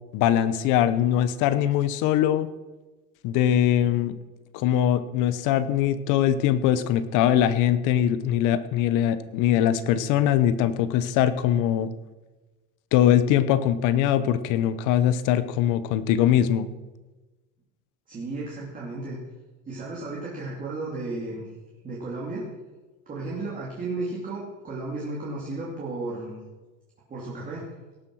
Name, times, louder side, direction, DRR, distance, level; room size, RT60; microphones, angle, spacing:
voice 1, 0.1-2.5 3.2-4.2 4.5-11.9 12.9-16.7, left 10 dB, 50° left, 14 dB, 0.9 m, -22 dB
voice 2, 18.1-19.2 19.7-21.5 21.8-22.5 23.1-26.4 27.1-27.7, right 2 dB, 20° right, -4 dB, 2.7 m, -33 dB
18.0 x 7.4 x 6.2 m, 1.2 s
cardioid pair, 155°, 39 cm